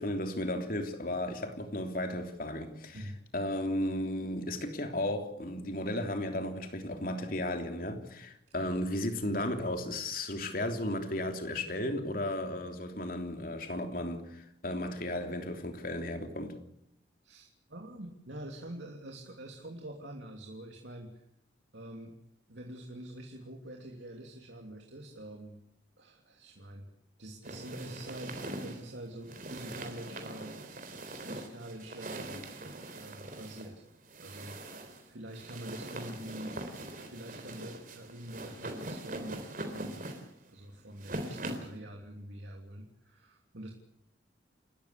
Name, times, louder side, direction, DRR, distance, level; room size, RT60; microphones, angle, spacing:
voice 1, 0.0-3.0 3.3-16.5, left 1 dB, 50° left, 3.3 m, -34 dB
voice 2, 17.2-21.2 21.7-22.1 22.5-25.6 26.0-26.9 27.2-30.5 31.2-32.4 32.9-33.8 34.2-36.6 37.0-40.0 40.5-43.7, right 1 dB, 75° right, 3.0 m, -45 dB
sound 1, 27.4-41.8, right 1 dB, 45° right, 3.8 m, -42 dB
29.5 x 14.0 x 8.4 m
head